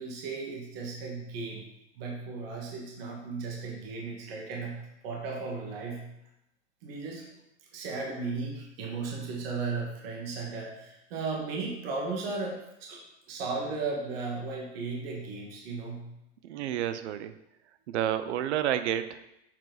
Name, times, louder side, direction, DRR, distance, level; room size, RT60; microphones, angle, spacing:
voice 1, 0.0-1.6 2.0-6.0 6.8-7.3 7.7-13.0 13.3-16.1, right 4 dB, 55° right, -1 dB, 1.8 m, -35 dB
voice 2, 16.4-17.3 17.9-19.2, right 11 dB, 70° right, 12 dB, 0.7 m, -30 dB
7.3 x 4.6 x 4.0 m, 0.83 s
supercardioid pair, 155°, 36 cm